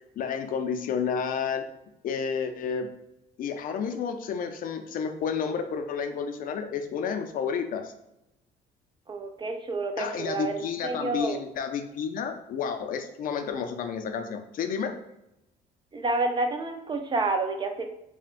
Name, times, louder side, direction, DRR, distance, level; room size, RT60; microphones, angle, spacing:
voice 1, 0.2-1.6 2.0-2.9 3.4-7.9 10.0-14.9, left 6 dB, 55° left, 7 dB, 0.4 m, -31 dB
voice 2, 9.1-11.4 15.9-17.8, right 3 dB, 25° right, 5 dB, 0.5 m, -29 dB
5.8 x 2.2 x 2.5 m, 0.87 s
cardioid pair, 110°, 17 cm